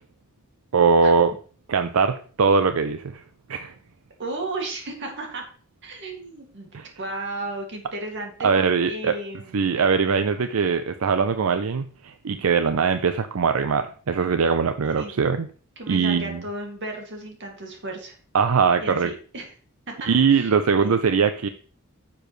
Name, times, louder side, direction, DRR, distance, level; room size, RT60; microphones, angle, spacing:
voice 1, 0.7-1.3 1.7-3.2 3.5-3.7 6.7-6.9 8.4-9.1 9.5-15.5 15.9-16.4 18.3-19.1 20.0-21.5, right 5 dB, 85° right, 10 dB, 0.5 m, -21 dB
voice 2, 4.2-5.5 5.8-6.7 7.0-9.8 15.0-15.3 15.8-18.2 18.8-19.5 19.9-20.6 20.8-21.0, right 2 dB, 60° right, 2 dB, 2.3 m, -34 dB
10.0 x 7.0 x 3.2 m, 0.42 s
head